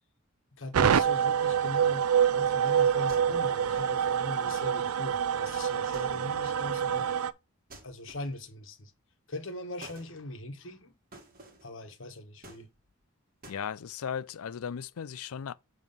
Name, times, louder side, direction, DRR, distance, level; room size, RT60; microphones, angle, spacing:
voice 1, 0.6-7.1 7.8-8.9 9.3-10.9 11.6-12.7, left 1 dB, 65° left, 1.2 m, -40 dB
sound 1, 0.7-7.3, right 8 dB, 90° right, 0.4 m, -26 dB
sound 2, 3.1-3.6 5.9-6.4 7.7-8.5 9.8-10.1 11.1-11.7 12.4-13.0 13.4-13.7, right 2 dB, 40° right, 1.4 m, -51 dB
voice 2, 13.5-15.5, left 7 dB, 90° left, 0.4 m, -36 dB
7.2 x 3.1 x 5.4 m
head